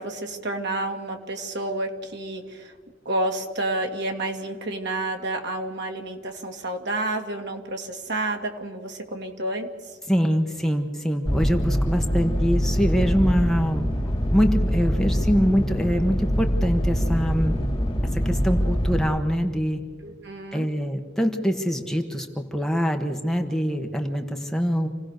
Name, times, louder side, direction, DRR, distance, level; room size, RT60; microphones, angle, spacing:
voice 1, 0.0-2.7 3.0-9.7 20.0-20.7, right 2 dB, 60° right, 3 dB, 2.4 m, -30 dB
voice 2, 10.1-13.9 14.3-17.6 18.1-19.8 20.5-24.9, equal, 5° left, 3 dB, 1.3 m, -24 dB
sound 1, 11.3-19.0, equal, 20° left, 4.0 m, -24 dB
27.5 x 17.5 x 6.6 m, 1.5 s
head